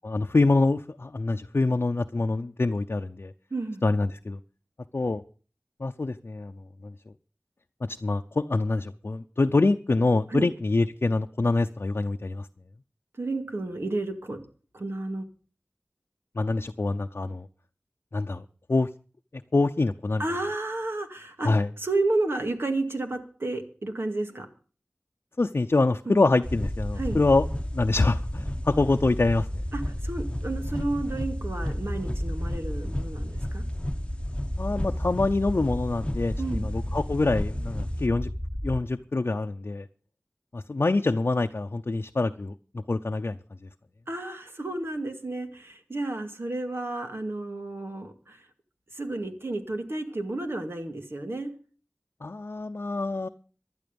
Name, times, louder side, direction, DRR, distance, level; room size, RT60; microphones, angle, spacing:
voice 1, 0.0-3.3 3.8-4.4 4.9-5.2 5.8-6.5 6.8-6.9 7.9-12.5 16.4-17.5 18.1-18.4 18.7-18.9 19.5-20.2 21.4-21.7 25.4-27.4 27.7-29.5 34.6-38.3 38.6-39.9 40.5-42.5 42.9-43.4 52.2-53.3, left 3 dB, 70° left, 5 dB, 0.6 m, -25 dB
voice 2, 3.5-3.8 10.3-10.5 13.2-14.4 14.7-15.3 20.2-21.5 21.8-24.5 26.1-26.2 27.0-27.2 29.7-33.6 36.4-36.7 44.1-48.4 48.9-51.5, right 2 dB, 75° right, 5 dB, 2.1 m, -31 dB
sound 1, 26.4-38.1, left 1 dB, 25° left, 1.0 m, -38 dB
sound 2, 26.4-38.8, equal, 10° right, 2.1 m, -32 dB
16.0 x 11.5 x 5.3 m, 0.40 s
wide cardioid pair, 50°, 4 cm